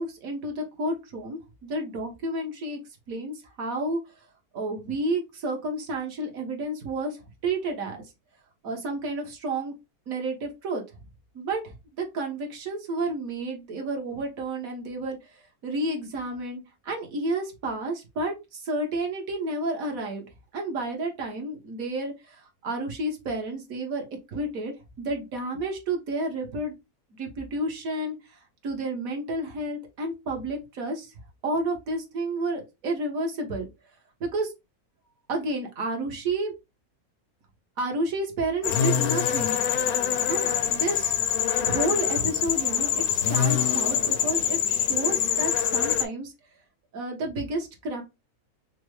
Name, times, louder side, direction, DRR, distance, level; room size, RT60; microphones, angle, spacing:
voice 1, 0.0-2.8 3.1-4.0 4.5-8.0 8.6-9.7 10.1-10.8 11.4-15.2 15.6-20.3 20.5-24.0 24.3-26.7 27.1-28.2 28.6-31.1 31.4-33.7 34.2-34.5 35.3-36.5 37.8-39.6 40.3-41.2 41.6-46.3 46.9-48.0, right 2 dB, 65° right, 2 dB, 1.6 m, -31 dB
sound 1, 38.6-46.0, left 9 dB, 75° left, 1.1 m, -25 dB
5.8 x 2.1 x 3.2 m, 0.24 s
omnidirectional pair, 1.6 m